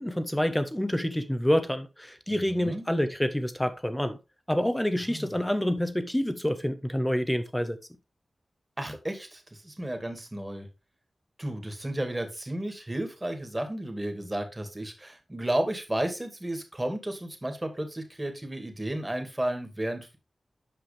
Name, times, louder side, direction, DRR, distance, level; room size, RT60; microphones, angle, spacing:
voice 1, 0.0-4.2 4.5-7.8, equal, 10° left, 1.2 m, -27 dB
voice 2, 2.5-2.9 5.1-5.3 8.8-10.7 11.4-20.2, right 1 dB, 20° right, 2.3 m, -33 dB
8.1 x 5.5 x 3.4 m
cardioid pair, 40°, 0 cm